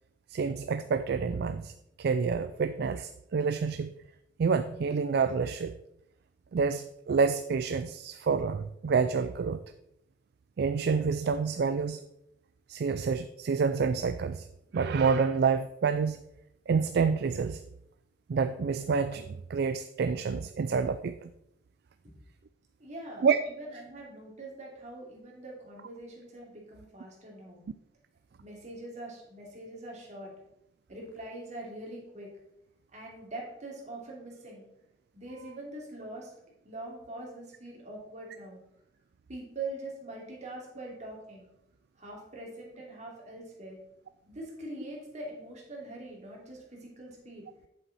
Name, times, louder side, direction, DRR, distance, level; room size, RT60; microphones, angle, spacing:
voice 1, 0.3-1.7 2.0-3.9 4.4-5.7 6.5-9.6 10.6-12.0 12.7-14.5 14.7-16.2 16.7-17.6 18.3-21.3 23.2-23.4, right 5 dB, 60° right, 11 dB, 0.4 m, -28 dB
voice 2, 22.8-27.6 28.4-30.3 30.9-32.3 32.9-34.7 35.1-36.3 36.6-38.6 39.3-41.5 42.0-43.8 44.3-47.5, right 2 dB, 40° right, -3 dB, 2.9 m, -43 dB
8.3 x 7.2 x 4.2 m, 0.81 s
head